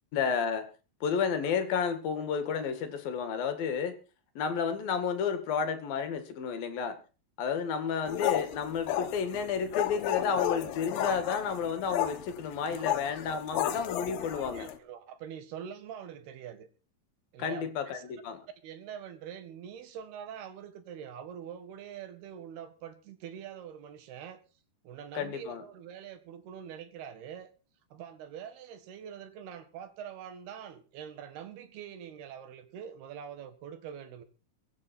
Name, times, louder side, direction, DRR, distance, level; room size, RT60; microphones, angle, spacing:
voice 1, 0.1-0.7 1.0-4.0 4.4-7.0 7.4-14.7 17.4-18.4 25.1-25.6, left 6 dB, 70° left, 3.5 m, -31 dB
sound 1, 8.1-14.8, left 11 dB, 85° left, 3.3 m, -33 dB
voice 2, 14.2-16.7 17.3-18.0 18.6-24.4 24.8-27.5 27.9-34.2, right 8 dB, 80° right, 3.7 m, -44 dB
23.5 x 8.6 x 4.4 m
omnidirectional pair, 4.5 m